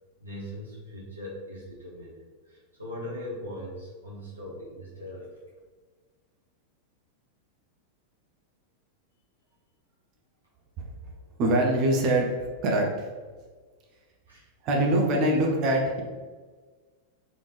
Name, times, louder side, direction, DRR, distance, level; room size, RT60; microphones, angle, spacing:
voice 1, 0.2-2.2 2.4-5.4 14.3-14.5, left 1 dB, 80° right, -6 dB, 1.4 m, -40 dB
voice 2, 11.4-13.1 14.6-16.0, right 1 dB, 40° right, 0 dB, 0.8 m, -24 dB
4.2 x 3.5 x 3.3 m, 1.4 s
figure-of-eight pair, 90°, 0 cm